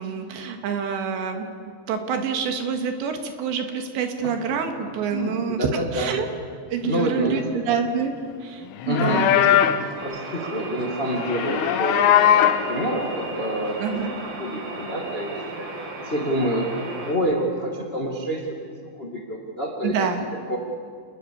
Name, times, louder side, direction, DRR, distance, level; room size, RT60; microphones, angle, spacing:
voice 1, 0.0-1.5 1.9-6.3 6.7-8.1 8.4-9.4 13.8-14.1 19.8-20.2, right 6 dB, 70° right, 5 dB, 3.8 m, -27 dB
voice 2, 5.1-6.1 6.8-7.6 8.8-9.5 9.8-13.8 14.4-15.7 16.0-16.6 17.0-18.5 18.9-20.1 20.5-20.6, equal, 30° left, 0 dB, 1.0 m, -27 dB
Livestock farm animals working animals, 8.7-9.9 11.2-12.7, left 10 dB, 90° left, 3.8 m, -19 dB
sound 1, 10.0-17.1, right 2 dB, 35° right, 3.1 m, -34 dB
29.0 x 19.5 x 7.0 m, 2.2 s
omnidirectional pair, 5.5 m